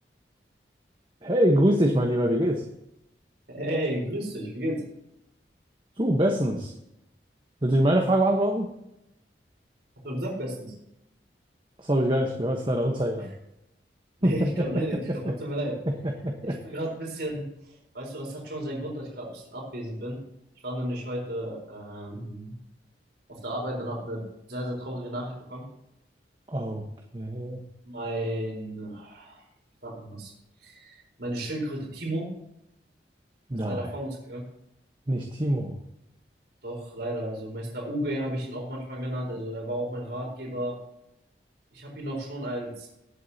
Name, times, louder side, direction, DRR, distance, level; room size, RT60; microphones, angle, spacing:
voice 1, 1.2-2.6 6.0-6.7 7.6-8.7 11.8-13.3 14.2-14.6 16.2-16.6 26.5-26.8 27.1-27.6 33.5-33.9 35.1-35.7, right 1 dB, 25° right, 1 dB, 1.1 m, -24 dB
voice 2, 3.5-4.8 10.0-10.7 14.2-15.8 16.4-17.4 17.9-20.2 20.6-22.5 23.3-24.2 24.5-25.6 27.8-29.4 29.8-30.3 30.6-32.3 33.6-34.4 36.6-40.8 41.7-42.9, right 1 dB, 65° right, 0 dB, 4.4 m, -33 dB
19.0 x 8.4 x 2.9 m, 0.84 s
head